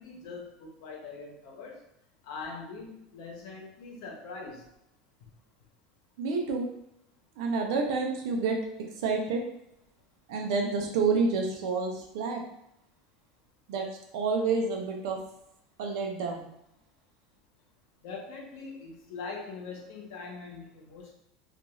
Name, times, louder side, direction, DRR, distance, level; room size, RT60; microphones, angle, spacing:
voice 1, 0.0-1.8 2.2-4.6 18.0-21.1, left 4 dB, 70° left, 0 dB, 0.9 m, -42 dB
voice 2, 6.2-6.7 7.4-8.6 9.0-9.4 10.3-12.4 13.7-13.9 14.1-15.2 15.8-16.5, right 4 dB, 80° right, 2 dB, 0.6 m, -28 dB
2.4 x 2.3 x 3.0 m, 0.80 s
supercardioid pair, 145°, 3 cm